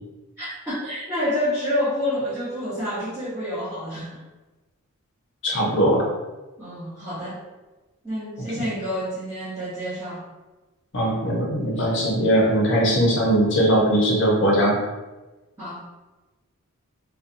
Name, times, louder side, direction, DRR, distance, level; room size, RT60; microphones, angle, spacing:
voice 1, 0.4-4.2 6.6-7.4 8.0-10.2 15.6-15.8, equal, 10° right, -13 dB, 0.6 m, -28 dB
voice 2, 5.4-6.0 8.6-8.7 10.9-14.8, equal, 55° left, -3 dB, 0.6 m, -20 dB
2.6 x 2.1 x 2.5 m, 1.1 s
head